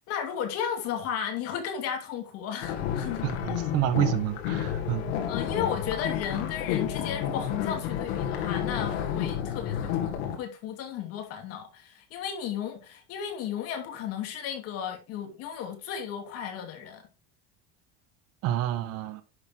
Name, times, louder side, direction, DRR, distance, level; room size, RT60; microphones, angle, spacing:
voice 1, 0.1-3.6 5.3-17.1, left 8 dB, 50° left, 2.8 m, -34 dB
sound 1, 2.6-10.4, left 9 dB, 90° left, 2.3 m, -31 dB
voice 2, 3.2-5.1 18.4-19.2, right 11 dB, 50° right, 1.5 m, -28 dB
10.5 x 7.1 x 3.6 m
cardioid pair, 160°, 31 cm